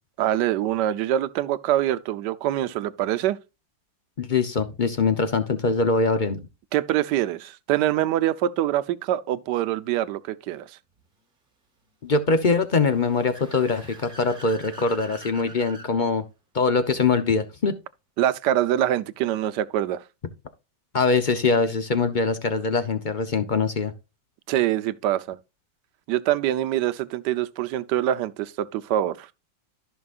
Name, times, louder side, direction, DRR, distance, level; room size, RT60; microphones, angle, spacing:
voice 1, 0.2-3.4 6.7-10.8 18.2-20.0 24.5-25.4 26.1-29.3, right 12 dB, 70° right, 1.2 m, -24 dB
voice 2, 4.2-6.4 12.0-16.2 16.5-17.7 20.9-23.9, left 4 dB, 50° left, 0.5 m, -23 dB
Car / Accelerating revving vroom, 12.7-15.9, right 2 dB, 30° right, 1.7 m, -45 dB
14.5 x 6.1 x 2.4 m
omnidirectional pair, 2.0 m